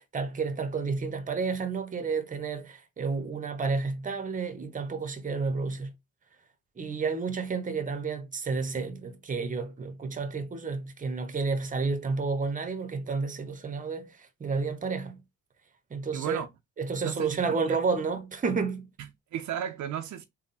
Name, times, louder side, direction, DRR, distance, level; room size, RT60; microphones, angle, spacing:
voice 1, 0.0-5.9 6.8-15.2 15.9-16.4 16.8-18.9, right 4 dB, 25° right, 0.8 m, -31 dB
voice 2, 16.1-16.5 17.0-17.8 19.0-20.3, right 10 dB, 70° right, 0.6 m, -35 dB
3.6 x 2.2 x 4.1 m
cardioid pair, 90°, 30 cm